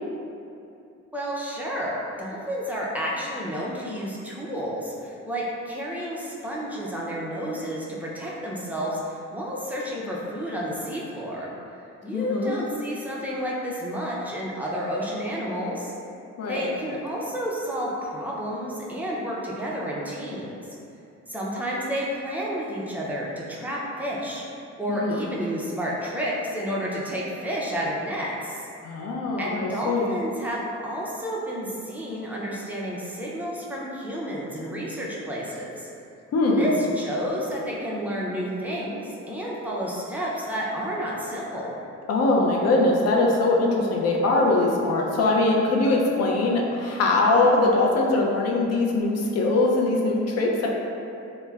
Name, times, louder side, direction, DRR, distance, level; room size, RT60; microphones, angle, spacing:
voice 1, 1.1-11.5 12.0-15.9 16.5-20.6 21.3-24.4 24.8-28.7 29.4-35.9 36.6-41.8, equal, 5° right, -5 dB, 0.4 m, -30 dB
voice 2, 12.1-12.6 16.4-16.8 24.9-25.2 28.8-30.2 36.3-36.8 42.1-50.7, left 2 dB, 55° left, -1 dB, 0.5 m, -22 dB
3.1 x 2.1 x 2.3 m, 2.7 s
cardioid pair, 90°, 30 cm